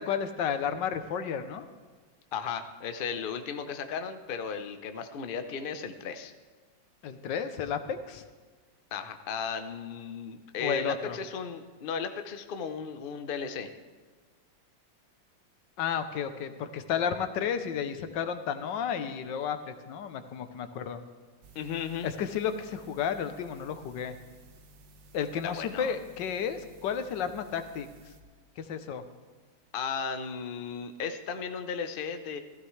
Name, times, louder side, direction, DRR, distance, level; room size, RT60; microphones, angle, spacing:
voice 1, 0.0-1.7 7.0-8.2 10.6-11.2 15.8-21.0 22.0-24.2 25.1-27.9 28.6-29.0, left 7 dB, 80° left, 9 dB, 1.4 m, -32 dB
voice 2, 2.3-6.3 8.9-13.7 21.5-22.1 25.4-25.9 29.7-32.4, left 6 dB, 60° left, 8 dB, 0.5 m, -35 dB
sound 1, 21.4-28.2, right 1 dB, 80° right, 1.6 m, -56 dB
16.0 x 14.5 x 3.2 m, 1.5 s
omnidirectional pair, 2.0 m